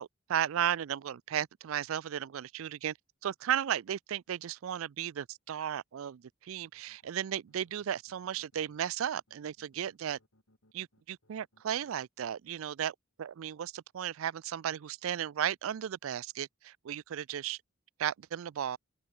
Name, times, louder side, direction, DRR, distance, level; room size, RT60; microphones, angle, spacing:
voice 1, 0.0-2.9 3.2-10.2 10.7-17.6 18.0-18.8, right 9 dB, 80° right, 0.4 m, -35 dB
sound 1, 6.6-12.1, left 1 dB, 80° left, 5.5 m, -69 dB
head